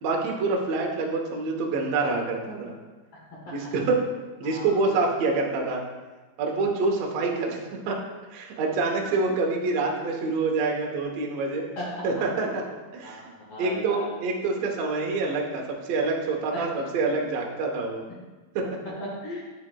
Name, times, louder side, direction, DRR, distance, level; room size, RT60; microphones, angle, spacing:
voice 1, 0.0-2.8 3.5-4.0 4.4-5.8 6.4-8.0 8.3-11.6 12.0-12.6 12.9-13.2 13.6-18.0 18.5-18.7, right 3 dB, 90° right, 0 dB, 1.4 m, -26 dB
voice 2, 3.3-3.7 4.4-4.8 11.4-12.1 13.0-14.1 16.5-16.6 18.8-19.5, equal, 70° left, -5 dB, 1.3 m, -37 dB
8.6 x 7.7 x 2.2 m, 1.3 s
omnidirectional pair, 4.4 m